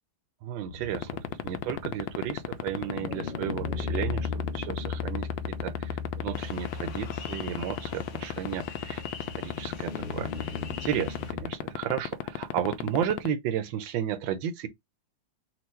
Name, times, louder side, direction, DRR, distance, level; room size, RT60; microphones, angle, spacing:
voice 1, 0.4-1.1 1.4-5.3 5.6-9.0 9.4-10.5 10.8-14.7, right 10 dB, 75° right, 1.4 m, -33 dB
sound 1, 0.7-11.4, left 4 dB, 35° left, 1.0 m, -37 dB
sound 2, 0.9-13.3, left 14 dB, 80° left, 1.3 m, -31 dB
sound 3, 6.3-11.3, left 6 dB, 55° left, 1.3 m, -46 dB
4.5 x 2.3 x 4.2 m
omnidirectional pair, 2.1 m